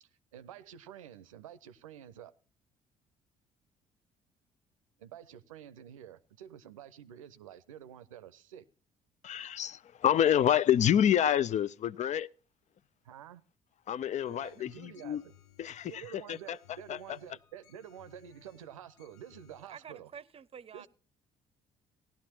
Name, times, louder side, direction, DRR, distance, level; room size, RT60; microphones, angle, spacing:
voice 1, 0.0-2.3 5.0-8.7 13.0-13.4 14.3-15.3 15.9-20.1 20.7-20.9, right 9 dB, 85° right, 0.6 m, -49 dB
voice 2, 9.2-12.3 13.9-15.2 15.6-16.0 16.3-16.6 16.9-17.0, left 10 dB, 45° left, 0.5 m, -27 dB
sound 1, 14.2-19.6, left 8 dB, 80° left, 1.0 m, -63 dB
voice 3, 19.7-20.9, right 7 dB, 35° right, 0.7 m, -48 dB
17.5 x 11.5 x 2.8 m
figure-of-eight pair, 50°, 17 cm